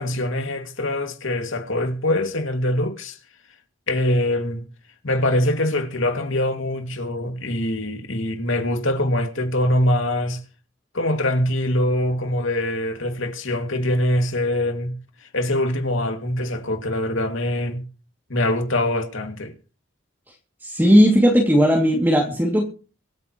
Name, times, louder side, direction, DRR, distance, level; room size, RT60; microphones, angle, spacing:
voice 1, 0.0-3.2 3.9-4.6 5.0-10.4 10.9-15.0 15.3-17.8 18.3-19.5, left 1 dB, 70° left, 2.5 m, -23 dB
voice 2, 20.6-22.7, equal, 10° right, 2.7 m, -16 dB
25.5 x 9.0 x 3.2 m
head